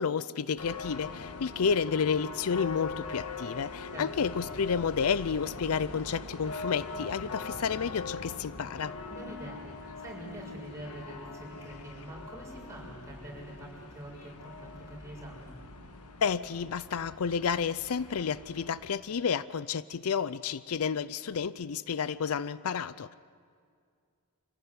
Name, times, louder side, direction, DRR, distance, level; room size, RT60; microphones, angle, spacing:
voice 1, 0.0-9.0 16.2-23.1, left 6 dB, 70° left, 17 dB, 0.5 m, -31 dB
sound 1, 0.6-18.9, left 4 dB, 85° left, 1.5 m, -42 dB
voice 2, 9.1-15.5, right 1 dB, 15° right, -3 dB, 6.9 m, -45 dB
25.5 x 16.0 x 9.7 m, 2.2 s
head